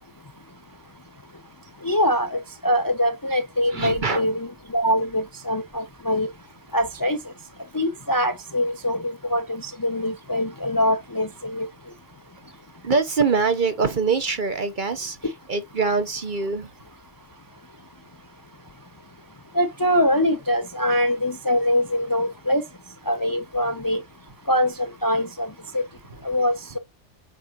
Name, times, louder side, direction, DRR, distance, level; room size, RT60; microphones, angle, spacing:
voice 1, 1.8-6.3 6.7-7.2 7.7-11.7 19.5-22.6 23.1-24.0 24.5-25.5 25.7-25.8 26.2-26.8, equal, 20° left, 0.6 m, -23 dB
voice 2, 3.7-4.3 12.8-16.7, right 4 dB, 45° right, 1.0 m, -24 dB
8.1 x 4.9 x 2.9 m
omnidirectional pair, 1.3 m